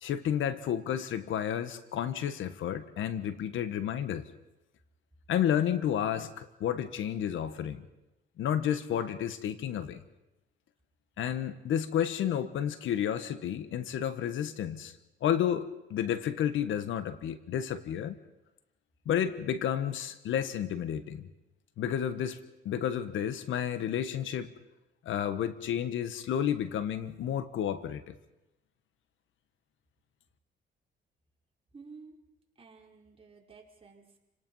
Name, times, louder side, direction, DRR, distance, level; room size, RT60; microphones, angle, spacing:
voice 1, 0.0-4.3 5.3-7.8 8.4-10.0 11.2-14.9 15.2-18.2 19.0-21.3 21.8-22.4 22.6-24.5 25.0-28.1, left 9 dB, 75° left, 12 dB, 1.4 m, -31 dB
voice 2, 31.7-32.2 32.6-34.2, right 4 dB, 30° right, 0 dB, 4.8 m, -53 dB
30.0 x 18.5 x 5.6 m, 0.94 s
cardioid pair, 90°, 20 cm